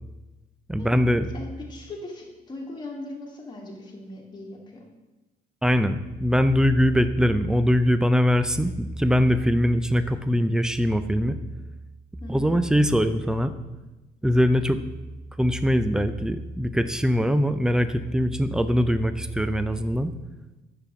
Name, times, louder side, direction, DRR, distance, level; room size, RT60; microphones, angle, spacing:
voice 1, 0.7-1.3 5.6-11.4 12.3-13.5 14.2-14.8 15.4-20.1, equal, 5° right, 11 dB, 0.3 m, -22 dB
voice 2, 1.3-4.9 12.2-12.6, left 2 dB, 25° left, -1 dB, 1.4 m, -39 dB
5.2 x 4.6 x 5.8 m, 1.1 s
cardioid pair, 110°, 17 cm